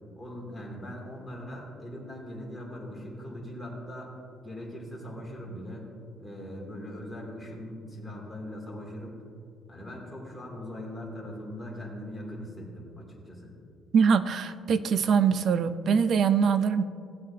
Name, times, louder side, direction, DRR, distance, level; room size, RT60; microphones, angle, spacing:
voice 1, 0.2-4.1 4.4-5.9 6.2-9.2 9.7-13.6, equal, 5° left, -3 dB, 2.7 m, -40 dB
voice 2, 13.9-16.8, right 6 dB, 55° right, 13 dB, 0.5 m, -23 dB
16.5 x 7.8 x 2.8 m, 2.4 s
cardioid pair, 110°, 0 cm